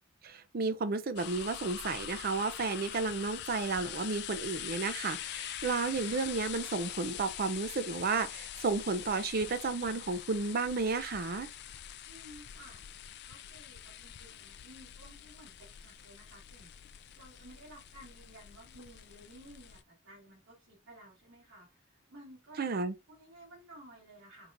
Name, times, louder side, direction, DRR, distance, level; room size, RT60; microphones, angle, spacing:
voice 1, 0.2-11.5 22.6-22.9, right 4 dB, 50° right, 0.5 m, -32 dB
sound 1, 1.2-19.8, left 11 dB, 55° left, 0.4 m, -44 dB
voice 2, 12.1-12.8 13.3-22.6 23.1-24.5, right 1 dB, 75° right, 1.9 m, -55 dB
4.6 x 3.9 x 2.6 m
head